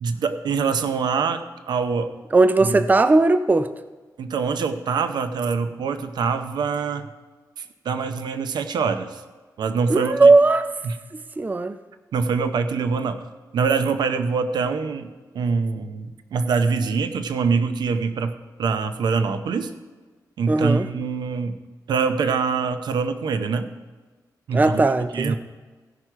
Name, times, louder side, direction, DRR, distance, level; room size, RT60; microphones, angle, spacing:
voice 1, 0.0-2.1 2.6-2.8 4.2-7.1 7.6-9.2 9.6-10.3 10.8-10.9 12.1-13.2 13.5-18.3 18.6-19.7 20.4-21.6 21.9-23.7 24.5-24.8 25.1-25.4, right 5 dB, 90° right, 10 dB, 0.7 m, -24 dB
voice 2, 2.3-3.7 9.9-10.7 11.4-11.8 20.5-20.9 24.5-25.4, right 3 dB, 25° right, 12 dB, 0.4 m, -17 dB
16.0 x 6.2 x 4.5 m, 1.3 s
cardioid pair, 70°, 7 cm